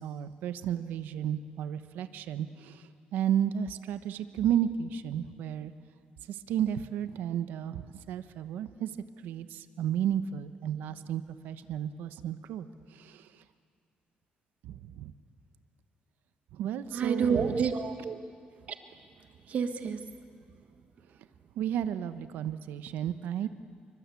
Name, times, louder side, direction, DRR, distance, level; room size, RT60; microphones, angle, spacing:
voice 1, 0.0-5.7 6.3-8.9 9.2-13.4 14.6-15.1 16.5-17.5 21.6-23.5, right 9 dB, 85° right, 11 dB, 1.1 m, -33 dB
voice 2, 16.9-18.2 18.7-18.8 19.5-20.0, right 6 dB, 50° right, 7 dB, 1.4 m, -29 dB
27.5 x 24.0 x 8.5 m, 2.3 s
cardioid pair, 130°, 3 cm